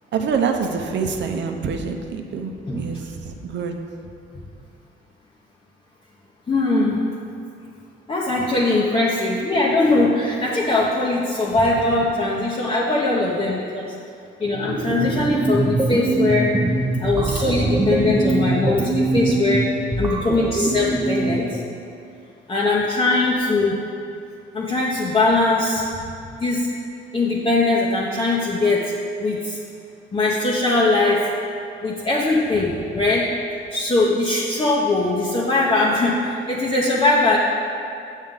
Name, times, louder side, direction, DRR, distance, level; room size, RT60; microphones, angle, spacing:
voice 1, 0.1-3.7, right 5 dB, 65° right, 4 dB, 0.7 m, -26 dB
voice 2, 6.5-7.0 8.1-13.9 14.4-16.5 17.0-19.7 20.0-21.6 22.5-23.8 24.5-25.9 26.4-26.7 27.1-29.6 30.1-31.3 31.8-33.3 33.7-37.4, left 2 dB, 30° left, -5 dB, 0.8 m, -21 dB
sound 1, 14.5-21.6, right 2 dB, 15° right, 0.7 m, -23 dB
7.3 x 6.4 x 3.7 m, 2.5 s
cardioid pair, 90°, 20 cm